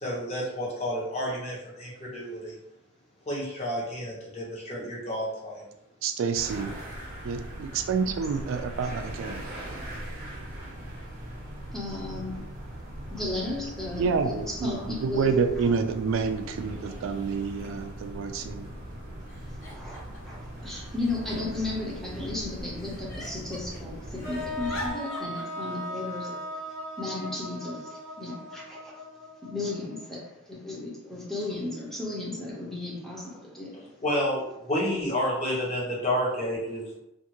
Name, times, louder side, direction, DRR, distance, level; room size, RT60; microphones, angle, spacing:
voice 1, 0.0-2.5 3.3-5.6 34.0-37.0, equal, 35° left, -5 dB, 0.9 m, -30 dB
voice 2, 6.0-6.7 7.2-9.4 14.0-18.7, right 5 dB, 70° right, 7 dB, 0.3 m, -28 dB
sound 1, 6.3-24.9, right 1 dB, 50° right, 0.9 m, -40 dB
voice 3, 8.0-8.4 11.7-12.4 13.1-15.4 19.7-20.4 20.6-26.4 27.0-28.9 29.4-33.9, left 2 dB, ahead, -5 dB, 0.7 m, -35 dB
Giggle, 17.7-17.8 18.1-18.6 19.3-20.4 21.0-22.3 22.8-23.8 24.1-25.4, left 1 dB, 65° left, 1.3 m, -43 dB
sound 2, 24.2-30.3, left 1 dB, 90° left, 1.3 m, -38 dB
2.5 x 2.4 x 2.9 m, 0.84 s
head